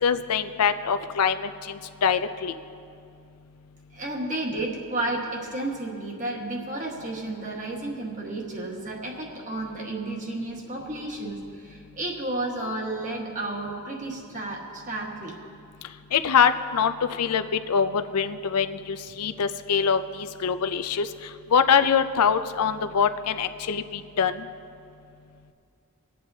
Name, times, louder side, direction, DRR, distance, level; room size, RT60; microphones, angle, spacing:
voice 1, 0.0-2.5 16.1-16.9 17.2-21.1 21.5-24.4, left 7 dB, 90° left, 10 dB, 0.5 m, -24 dB
voice 2, 3.9-15.3, right 2 dB, 35° right, -1 dB, 1.5 m, -32 dB
25.0 x 8.6 x 2.8 m, 2.5 s
head